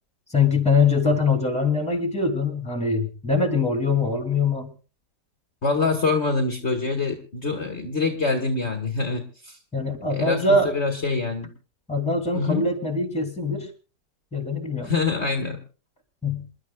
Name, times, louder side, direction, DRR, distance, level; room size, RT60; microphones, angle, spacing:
voice 1, 0.3-4.7 9.7-10.7 11.9-13.7 14.3-14.9 16.2-16.4, left 3 dB, 5° left, 4 dB, 2.9 m, -23 dB
voice 2, 5.6-9.6 10.1-11.5 12.3-12.7 14.8-15.6, left 4 dB, 40° left, 3 dB, 1.9 m, -25 dB
28.0 x 11.5 x 2.3 m, 0.36 s
omnidirectional pair, 1.9 m